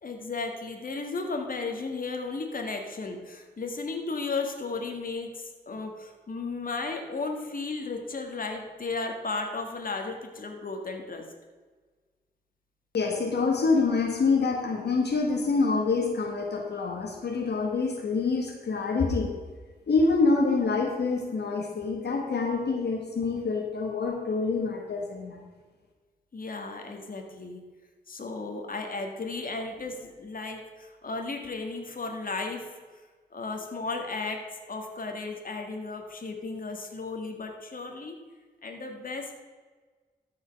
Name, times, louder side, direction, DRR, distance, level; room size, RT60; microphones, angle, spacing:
voice 1, 0.0-11.2 26.3-27.6 28.1-32.7 33.3-34.4 34.7-38.1 38.6-39.4, left 3 dB, 55° left, 3 dB, 1.7 m, -34 dB
voice 2, 12.9-19.3 19.9-25.5, left 4 dB, 75° left, 1 dB, 1.5 m, -26 dB
13.5 x 5.6 x 5.2 m, 1.4 s
cardioid pair, 65°, 17 cm